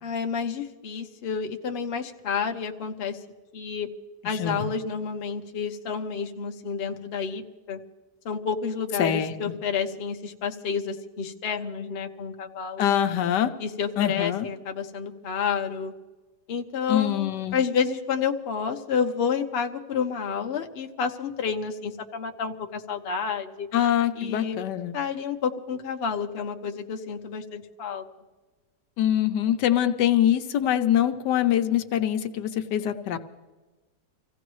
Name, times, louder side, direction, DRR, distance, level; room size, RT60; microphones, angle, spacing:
voice 1, 0.0-3.2 3.5-3.9 4.2-7.4 7.7-7.8 8.2-12.9 13.6-15.9 16.5-23.7 24.2-24.6 24.9-28.0, left 6 dB, 45° left, 4 dB, 1.0 m, -30 dB
voice 2, 4.2-4.7 9.0-9.3 12.8-13.6 14.0-14.5 16.9-17.6 23.7-24.9 29.0-33.2, left 10 dB, 85° left, 8 dB, 1.4 m, -24 dB
26.0 x 16.0 x 3.1 m, 1.3 s
omnidirectional pair, 1.8 m